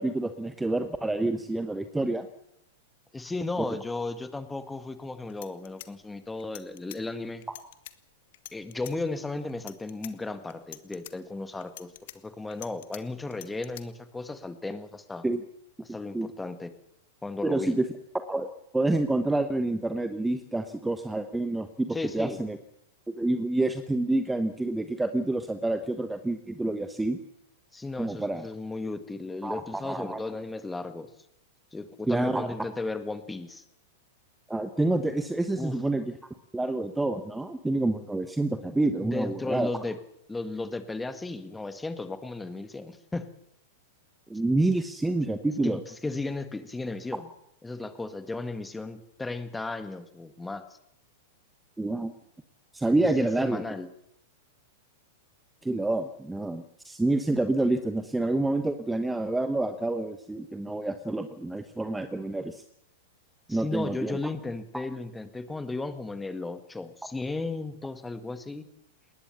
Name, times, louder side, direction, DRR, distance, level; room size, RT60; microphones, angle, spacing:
voice 1, 0.0-2.3 3.6-3.7 15.2-15.4 16.1-16.3 17.4-17.8 18.1-18.5 18.7-22.6 23.1-27.2 28.0-28.5 29.4-30.2 32.1-32.5 34.5-36.1 36.5-39.7 44.3-45.8 51.8-52.1 52.7-53.6 55.6-62.6 63.5-64.2, right 2 dB, 5° right, 10 dB, 1.2 m, -28 dB
voice 2, 3.1-7.5 8.5-11.9 12.2-15.2 15.8-16.7 17.2-17.8 21.9-22.4 27.7-31.1 31.7-33.6 35.6-35.7 39.0-40.0 40.3-43.3 45.6-47.3 47.6-50.6 53.0-53.9 63.5-68.7, left 3 dB, 10° left, 10 dB, 1.8 m, -35 dB
sound 1, 5.0-5.1 5.3-7.0 7.4-7.9 8.3-8.9 9.5-10.1 10.5-11.1 11.6-13.0 13.3-13.8, left 14 dB, 55° left, 1.3 m, -45 dB
20.5 x 19.5 x 7.1 m, 0.77 s
figure-of-eight pair, 95°, 0 cm